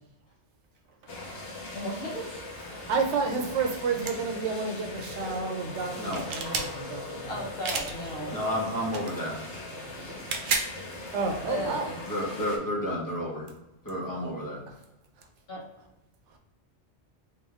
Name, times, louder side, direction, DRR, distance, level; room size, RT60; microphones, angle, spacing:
sound 1, 1.1-12.6, left 2 dB, 80° left, 1.2 m, -40 dB
voice 1, 1.7-2.4 7.2-8.4 11.5-12.0 15.5-15.6, left 1 dB, 60° left, -2 dB, 1.2 m, -35 dB
voice 2, 2.7-7.3 10.1-10.2 11.1-11.9, right 4 dB, 85° right, 4 dB, 1.0 m, -30 dB
sound 2, 4.0-4.1 6.0-6.7 7.6-7.9 8.9-9.1 10.1-10.7, right 4 dB, 55° right, 0.6 m, -30 dB
voice 3, 8.3-9.3 12.1-13.5 13.8-14.6, equal, 20° left, -5 dB, 1.1 m, -31 dB
3.3 x 3.0 x 3.5 m, 0.93 s
omnidirectional pair, 1.2 m